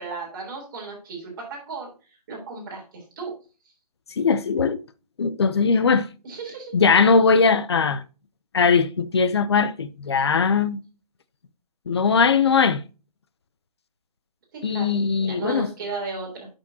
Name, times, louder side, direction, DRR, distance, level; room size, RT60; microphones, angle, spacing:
voice 1, 0.0-1.9 2.3-3.3 6.2-6.7 14.5-16.5, right 4 dB, 30° right, 3.5 m, -35 dB
voice 2, 4.2-4.8 5.2-6.1 6.7-8.0 8.5-10.8 11.9-12.8 14.6-15.7, left 5 dB, 40° left, 0.6 m, -20 dB
8.3 x 6.2 x 2.8 m
hypercardioid pair, 165°, 21 cm